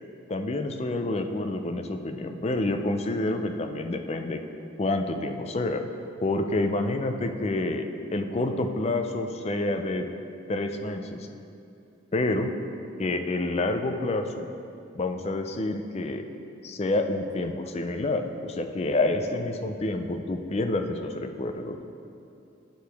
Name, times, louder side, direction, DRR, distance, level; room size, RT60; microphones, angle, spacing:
voice 1, 0.3-4.4 4.8-5.8 6.2-7.8 8.1-10.1 10.5-11.3 12.1-12.5 13.0-14.5 14.9-16.2 16.6-21.8, left 2 dB, 30° left, 6 dB, 0.4 m, -28 dB
11.0 x 4.8 x 3.4 m, 2.6 s
head